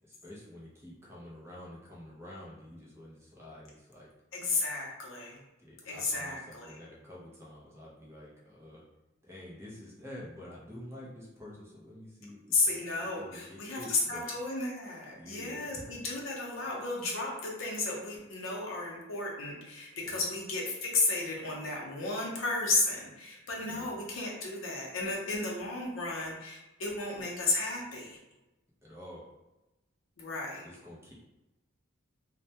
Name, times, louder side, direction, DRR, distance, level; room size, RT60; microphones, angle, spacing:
voice 1, 0.0-4.1 5.6-8.8 9.2-14.3 15.1-16.0 16.6-16.8 20.0-20.2 23.6-23.9 28.8-29.3 30.6-31.1, left 1 dB, 15° right, -5 dB, 0.5 m, -48 dB
voice 2, 4.3-5.4 5.8-6.8 12.5-28.2 30.2-30.7, left 3 dB, 70° left, -2 dB, 0.6 m, -33 dB
2.1 x 2.1 x 2.7 m, 1.0 s
head